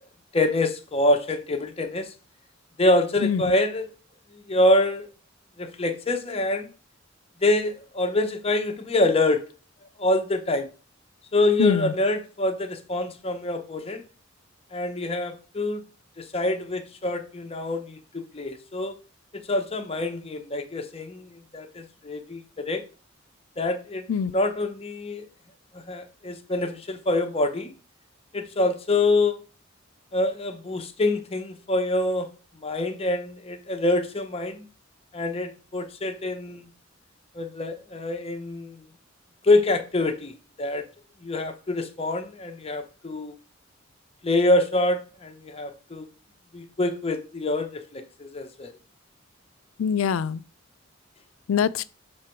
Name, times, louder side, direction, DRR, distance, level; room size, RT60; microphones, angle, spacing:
voice 1, 0.3-2.1 2.8-3.9 4.3-5.1 5.6-6.7 7.4-9.4 10.0-10.7 11.3-14.0 14.7-15.8 16.2-19.0 19.3-22.8 23.6-25.3 25.7-27.7 28.3-29.4 30.1-32.3 32.6-34.7 35.1-36.7 37.3-38.8 39.4-40.8 41.2-43.3 44.2-46.1 46.5-48.7, left 2 dB, 30° left, 0.8 m, -25 dB
voice 2, 11.6-11.9 24.1-24.3 49.8-50.4 51.5-51.9, left 7 dB, 85° left, 0.4 m, -23 dB
6.6 x 3.7 x 4.5 m
head